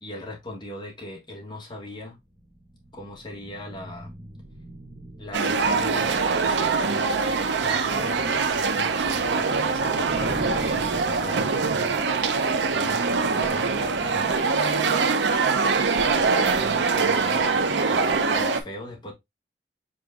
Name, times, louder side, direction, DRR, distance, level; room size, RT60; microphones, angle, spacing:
voice 1, 0.0-2.2 2.9-4.1 5.2-11.4 12.7-13.1 13.3-14.6 15.9-19.1, left 1 dB, 25° left, 1.5 m, -39 dB
sound 1, 2.1-14.6, right 1 dB, 50° right, 2.1 m, -43 dB
sound 2, 5.3-18.6, right 4 dB, 90° right, 0.6 m, -23 dB
4.9 x 3.9 x 2.3 m
head